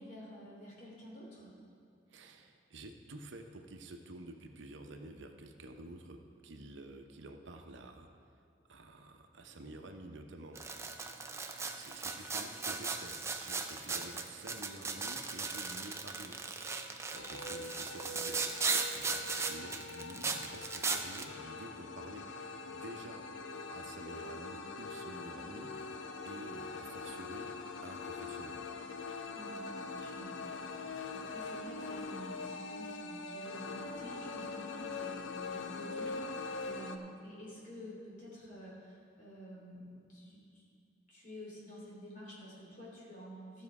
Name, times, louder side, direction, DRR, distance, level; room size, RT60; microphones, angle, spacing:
voice 1, 0.0-1.5 29.3-40.6 41.1-43.6, equal, 45° left, -4 dB, 2.9 m, -50 dB
voice 2, 2.1-6.2 6.4-8.1 8.7-10.6 11.0-11.1 11.5-22.2 22.7-23.2 23.7-27.5 27.8-28.7, right 2 dB, 85° right, 5 dB, 0.8 m, -50 dB
sound 1, 10.6-21.2, right 4 dB, 15° right, 0.5 m, -37 dB
sound 2, 17.1-37.0, left 3 dB, 90° left, 0.7 m, -43 dB
14.5 x 6.4 x 4.8 m, 2.4 s
head